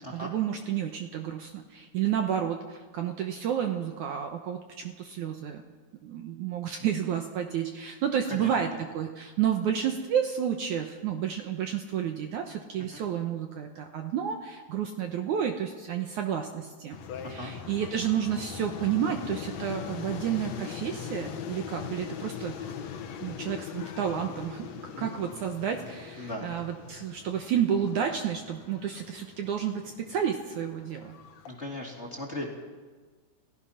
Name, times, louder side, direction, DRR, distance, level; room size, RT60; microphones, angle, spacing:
voice 1, 0.1-5.6 6.0-17.0 17.3-22.7 23.2-24.7 25.0-29.8 30.1-31.1, right 9 dB, 70° right, 5 dB, 2.1 m, -30 dB
sound 1, 16.9-31.5, left 7 dB, 60° left, 2.0 m, -41 dB
voice 2, 26.2-26.5 31.5-32.5, left 1 dB, 20° left, -1 dB, 2.3 m, -37 dB
29.5 x 15.5 x 5.8 m, 1.4 s
omnidirectional pair, 4.3 m